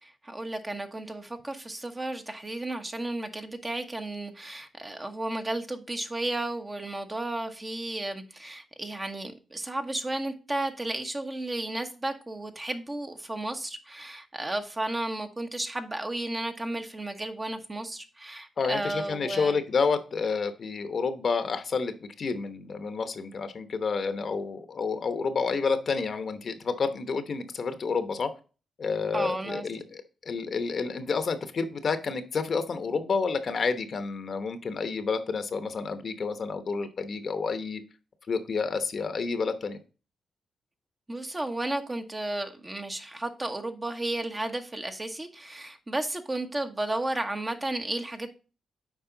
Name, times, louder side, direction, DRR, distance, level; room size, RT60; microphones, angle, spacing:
voice 1, 0.0-19.6 29.1-29.7 41.1-48.3, right 2 dB, 25° right, 1.1 m, -33 dB
voice 2, 18.6-28.3 28.8-37.8 38.3-39.8, left 5 dB, 55° left, 1.0 m, -29 dB
7.3 x 4.7 x 3.9 m
cardioid pair, 65°, 0 cm